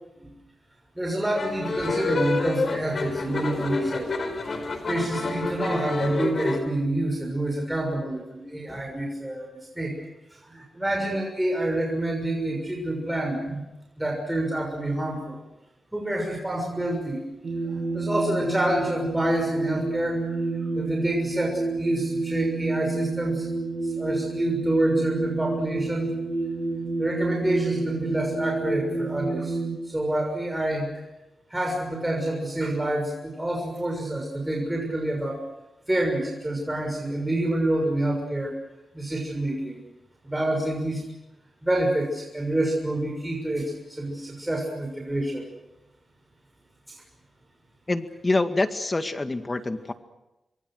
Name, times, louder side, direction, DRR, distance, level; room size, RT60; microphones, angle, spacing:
voice 1, 1.0-4.1 4.9-9.5 9.8-10.0 10.3-13.6 14.0-15.4 15.9-17.2 17.6-20.4 20.7-23.5 23.8-26.1 27.0-29.6 29.8-31.0 31.5-35.4 35.9-38.5 38.9-39.8 40.2-41.0 41.6-45.4 46.9-47.0, right 1 dB, 15° right, 1 dB, 6.4 m, -27 dB
sound 1, 1.3-6.6, left 3 dB, 55° left, 4.7 m, -28 dB
sound 2, 17.4-29.8, right 3 dB, 65° right, 7.5 m, -29 dB
voice 2, 47.9-49.9, left 2 dB, 30° left, 8 dB, 2.0 m, -26 dB
27.0 x 22.5 x 6.4 m, 0.96 s
cardioid pair, 55°, 0 cm